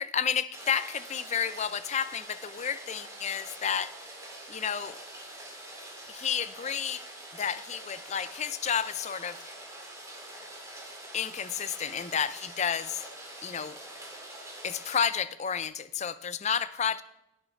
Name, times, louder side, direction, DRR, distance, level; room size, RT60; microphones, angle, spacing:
voice 1, 0.0-3.9 4.5-5.0 6.1-7.0 7.3-9.5 11.1-13.0 13.4-13.8 14.6-17.0, left 7 dB, 35° left, 14 dB, 0.5 m, -31 dB
Rain, 0.5-15.0, right 1 dB, 15° right, 2.3 m, -45 dB
16.0 x 6.7 x 4.5 m, 0.85 s
head